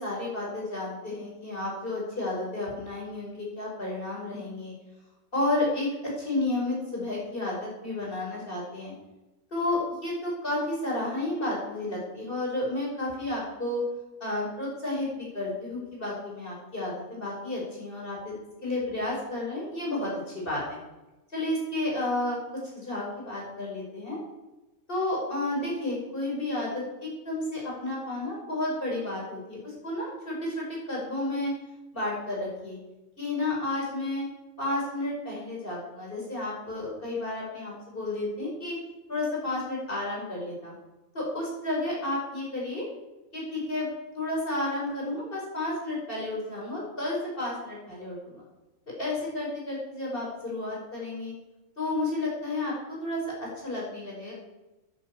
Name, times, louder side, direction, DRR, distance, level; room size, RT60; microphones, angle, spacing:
voice 1, 0.0-4.7 5.3-8.9 9.5-13.8 14.2-18.3 18.6-20.8 21.3-22.4 22.7-24.2 24.9-31.5 31.9-32.8 33.2-34.3 34.6-38.8 39.1-40.7 41.1-42.9 43.3-43.9 44.1-48.4 49.0-51.3 51.8-54.3, left 2 dB, 40° left, -4 dB, 5.8 m, -31 dB
11.0 x 10.0 x 8.4 m, 1.0 s
omnidirectional pair, 1.4 m